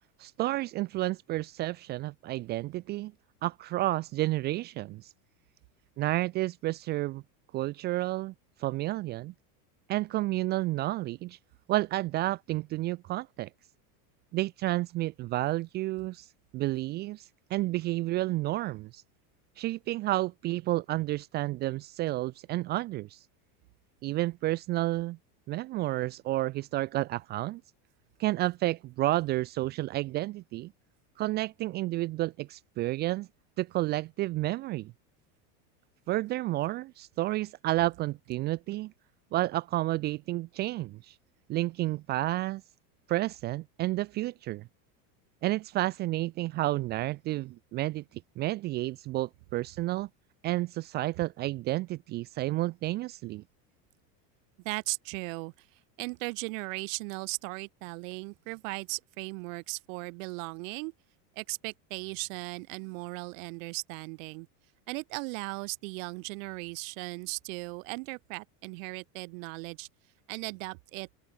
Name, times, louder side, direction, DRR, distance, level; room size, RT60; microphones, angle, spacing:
voice 1, 0.2-3.1 3.4-5.1 6.0-7.2 7.5-8.3 8.6-9.3 9.9-11.4 11.7-13.5 14.3-16.3 16.5-17.2 17.5-19.0 19.6-23.2 24.0-25.2 25.5-27.6 28.2-30.7 31.2-33.3 33.6-34.9 36.1-38.9 39.3-41.1 41.5-42.6 43.1-44.6 45.4-48.0 48.4-50.1 50.4-53.4, right 17 dB, 20° right, 0.4 m, -31 dB
voice 2, 54.6-60.9 61.3-64.5 64.9-69.9 70.3-71.1, right 30 dB, 55° right, 1.6 m, -37 dB
open air
supercardioid pair, 170°, 47 cm